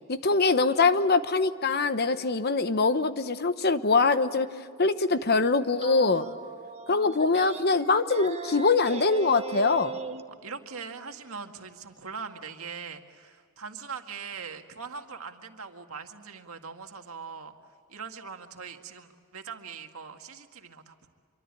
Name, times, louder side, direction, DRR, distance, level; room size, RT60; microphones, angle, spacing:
voice 1, 0.1-4.5 4.8-6.3 6.9-9.9, left 4 dB, 45° left, 11 dB, 1.0 m, -23 dB
sound 1, 5.8-10.2, right 4 dB, 30° right, 1.2 m, -39 dB
voice 2, 10.4-17.5 17.9-21.1, right 5 dB, 70° right, 5 dB, 2.0 m, -41 dB
26.0 x 24.0 x 8.7 m, 2.2 s
head